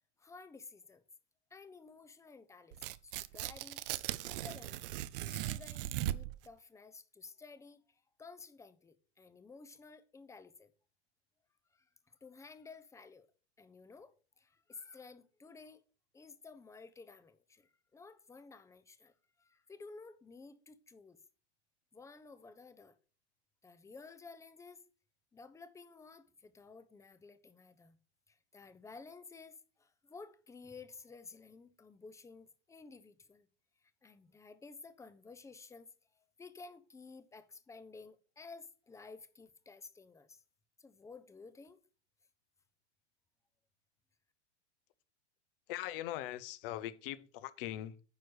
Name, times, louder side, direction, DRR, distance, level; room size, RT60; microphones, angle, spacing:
voice 1, 0.2-1.0 1.5-3.8 4.2-4.9 5.2-10.7 11.7-13.3 13.6-15.8 16.1-21.2 21.9-23.0 23.6-24.8 25.3-28.0 28.3-33.5 33.8-40.4 40.8-41.8, left 4 dB, 10° left, 0.8 m, -54 dB
Tearing, 2.7-6.5, right 14 dB, 50° right, 0.6 m, -39 dB
voice 2, 45.7-48.0, left 13 dB, 50° left, 1.0 m, -41 dB
9.6 x 4.7 x 6.4 m
hypercardioid pair, 110°, 35 cm